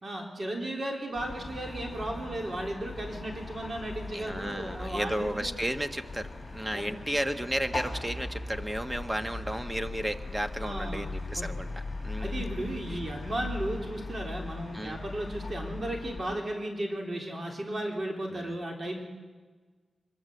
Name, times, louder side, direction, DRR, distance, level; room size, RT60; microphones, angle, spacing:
voice 1, 0.0-5.5 6.7-6.9 10.6-11.6 12.2-19.0, right 1 dB, 45° right, 1 dB, 3.9 m, -35 dB
sound 1, 1.2-16.2, left 2 dB, 10° left, 4.9 m, -39 dB
voice 2, 4.1-12.5 12.9-13.0 14.7-15.0 18.3-18.5, equal, 15° right, 8 dB, 1.4 m, -33 dB
24.5 x 21.5 x 8.0 m, 1.4 s
wide cardioid pair, 90°, 0 cm